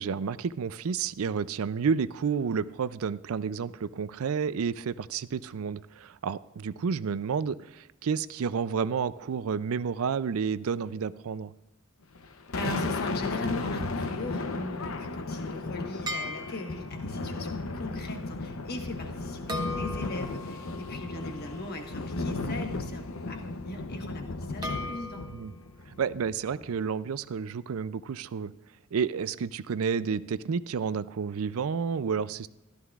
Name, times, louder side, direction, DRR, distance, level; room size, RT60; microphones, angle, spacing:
voice 1, 0.0-11.5 25.3-25.5 26.0-28.5 28.9-32.5, right 6 dB, 80° right, 16 dB, 0.4 m, -30 dB
Thunder, 12.2-26.8, left 3 dB, 75° left, 0.8 m, -35 dB
voice 2, 12.5-25.2, left 2 dB, 50° left, 3 dB, 1.4 m, -39 dB
sound 1, 16.1-17.1 19.5-22.6 24.6-25.5, left 1 dB, 20° right, 1.1 m, -39 dB
14.5 x 13.0 x 2.4 m, 0.95 s
head